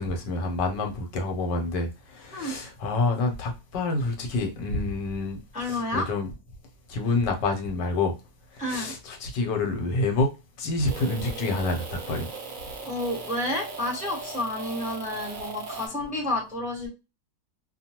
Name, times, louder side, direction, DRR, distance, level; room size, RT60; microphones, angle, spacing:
voice 1, 0.0-6.3 6.9-8.1 8.5-10.3 10.6-12.3, left 2 dB, 75° left, 1.4 m, -28 dB
voice 2, 5.5-6.1 8.6-8.9 12.8-16.9, left 1 dB, 5° right, 0.7 m, -30 dB
sound 1, 10.9-15.9, right 4 dB, 55° right, 0.5 m, -38 dB
2.8 x 2.3 x 2.8 m
omnidirectional pair, 1.9 m